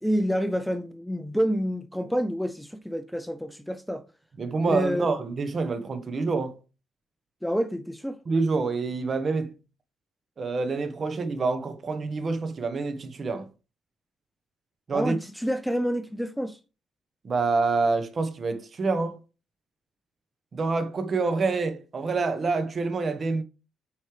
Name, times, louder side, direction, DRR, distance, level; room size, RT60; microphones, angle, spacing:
voice 1, 0.0-4.0 4.6-5.2 7.4-8.2 14.9-16.6, equal, ahead, 0.5 m, -28 dB
voice 2, 4.4-6.5 8.3-9.5 10.4-13.5 14.9-15.2 17.2-19.2 20.5-23.4, right 4 dB, 40° right, 1.2 m, -27 dB
8.2 x 5.3 x 3.3 m
cardioid pair, 90°, 0 cm